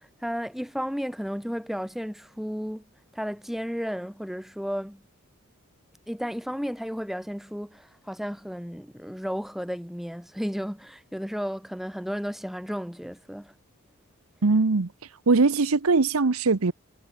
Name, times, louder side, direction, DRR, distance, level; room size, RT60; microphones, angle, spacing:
voice 1, 0.0-2.8 3.1-5.0 6.1-13.5, equal, ahead, 5.1 m, -33 dB
voice 2, 14.4-14.9 15.3-16.7, right 3 dB, 75° right, 0.8 m, -21 dB
head